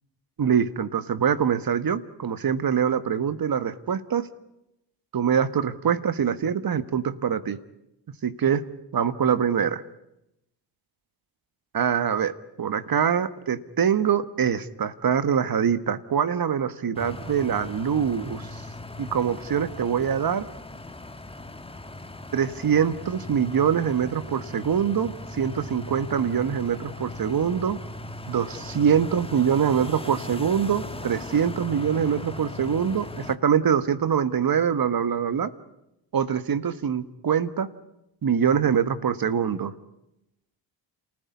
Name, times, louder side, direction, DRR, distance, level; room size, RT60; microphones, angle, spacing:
voice 1, 0.4-4.3 5.1-7.6 8.2-8.6 8.9-9.8 11.7-18.6 19.0-20.5 22.3-27.8 28.3-35.5 36.1-37.7 38.2-39.7, right 8 dB, 50° right, 13 dB, 1.5 m, -24 dB
sound 1, 16.9-33.4, left 1 dB, 10° left, 1.4 m, -38 dB
28.0 x 15.5 x 9.7 m, 0.90 s
supercardioid pair, 65°, 46 cm